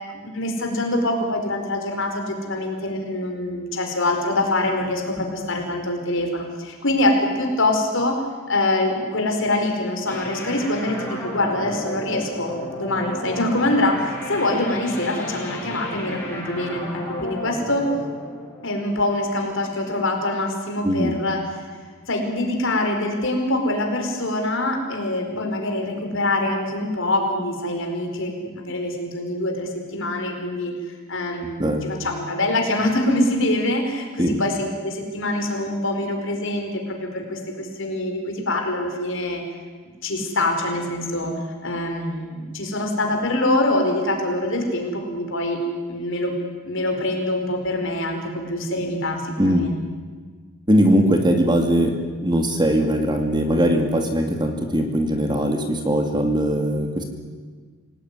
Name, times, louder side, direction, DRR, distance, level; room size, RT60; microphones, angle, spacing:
voice 1, 0.1-8.2 8.5-17.9 18.6-21.7 22.1-30.7 31.1-39.4 40.0-45.6 45.9-46.3 46.6-49.8, left 1 dB, 55° left, 3 dB, 4.8 m, -24 dB
sound 1, 10.1-19.4, left 1 dB, 10° left, 5.2 m, -33 dB
voice 2, 50.7-51.9 52.2-57.0, equal, 20° right, 4 dB, 2.3 m, -20 dB
26.5 x 18.0 x 9.7 m, 1.5 s
head